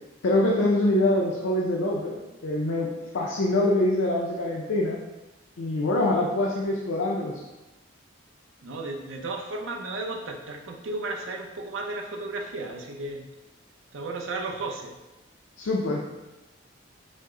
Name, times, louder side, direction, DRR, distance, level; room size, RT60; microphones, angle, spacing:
voice 1, 0.2-2.9 3.1-5.0 5.6-7.4 15.6-16.1, left 1 dB, 70° left, -2 dB, 0.5 m, -24 dB
voice 2, 8.6-13.2 13.9-15.0, right 2 dB, 75° right, 2 dB, 0.6 m, -34 dB
5.2 x 2.0 x 3.6 m, 1.0 s
head